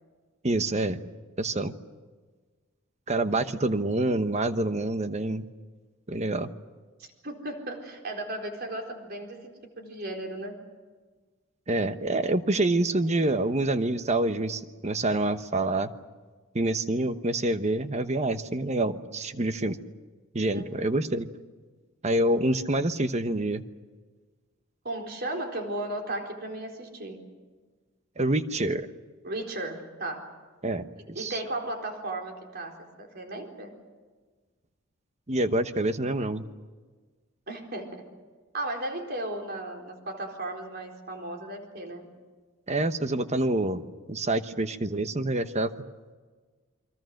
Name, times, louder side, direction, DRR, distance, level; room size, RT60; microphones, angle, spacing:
voice 1, 0.4-1.0 1.4-1.7 3.1-5.4 6.1-6.5 11.7-15.9 16.5-19.8 20.3-21.3 22.0-23.6 28.2-28.9 30.6-31.4 35.3-36.5 42.7-43.8 44.1-45.7, right 2 dB, 35° right, 10 dB, 1.1 m, -27 dB
voice 2, 7.0-10.6 20.5-20.6 24.8-27.2 29.2-30.2 31.1-33.7 37.5-38.1 38.5-42.1, right 1 dB, 50° right, 2 dB, 4.2 m, -35 dB
29.0 x 23.5 x 6.6 m, 1.4 s
head